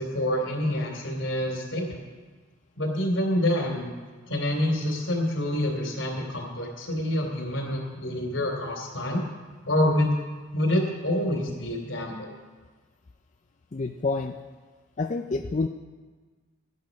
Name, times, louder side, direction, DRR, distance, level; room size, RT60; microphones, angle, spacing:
voice 1, 0.0-2.0 2.8-3.9 4.3-9.2 9.6-10.2 10.5-12.3, left 1 dB, 75° left, 1 dB, 3.1 m, -27 dB
voice 2, 13.7-14.4 15.0-15.7, left 3 dB, 35° left, 4 dB, 0.4 m, -28 dB
14.5 x 10.5 x 5.3 m, 1.4 s
head